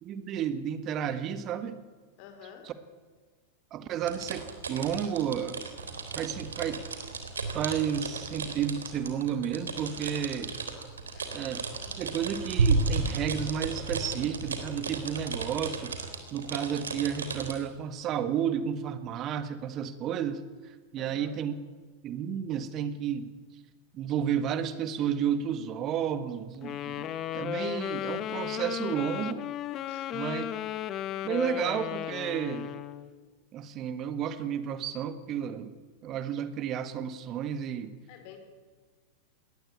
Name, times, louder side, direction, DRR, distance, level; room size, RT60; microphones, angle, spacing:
voice 1, 0.0-1.8 2.6-2.7 3.7-5.6 6.1-6.8 7.5-10.5 11.3-11.7 12.0-21.5 22.0-23.3 23.9-29.4 30.1-30.5 31.2-32.7 33.5-37.9, right 8 dB, 40° right, 11 dB, 1.7 m, -32 dB
voice 2, 2.2-2.7 11.1-11.3 21.0-21.3 29.9-30.1 38.1-38.4, left 9 dB, 55° left, 6 dB, 5.2 m, -49 dB
sound 1, 4.0-17.5, right 4 dB, 85° right, 3.5 m, -33 dB
Wind instrument woodwind instrument, 26.6-33.1, left 11 dB, 40° left, 1.1 m, -35 dB
20.5 x 18.5 x 8.7 m, 1.5 s
hypercardioid pair, 95°, 0 cm